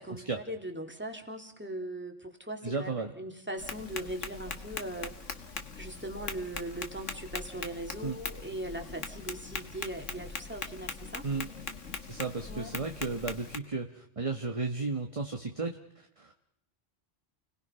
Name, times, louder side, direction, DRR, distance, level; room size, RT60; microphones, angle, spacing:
voice 1, 0.0-5.1 5.8-11.3 12.5-12.7, right 1 dB, 10° right, 4 dB, 2.8 m, -40 dB
voice 2, 2.6-3.1 8.0-8.2 11.2-11.5 12.1-15.8 16.2-16.4, right 3 dB, 30° right, 4 dB, 1.3 m, -34 dB
Tap, 3.6-13.6, left 4 dB, 85° left, 2.0 m, -41 dB
29.5 x 20.0 x 5.7 m, 0.81 s
omnidirectional pair, 1.2 m